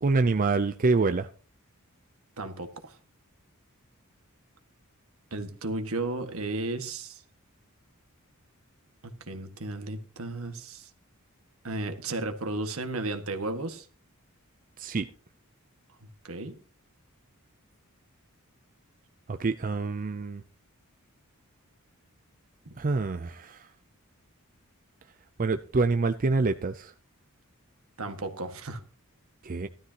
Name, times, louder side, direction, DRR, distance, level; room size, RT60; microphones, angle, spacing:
voice 1, 0.0-1.3 14.8-15.1 19.3-20.4 22.8-23.7 25.4-26.9 29.4-29.7, right 3 dB, 40° right, 9 dB, 0.5 m, -26 dB
voice 2, 2.4-3.0 5.3-7.2 9.0-10.9 11.6-13.9 16.2-16.6 28.0-28.8, right 2 dB, 75° right, 7 dB, 1.7 m, -34 dB
16.0 x 12.5 x 2.9 m, 0.39 s
head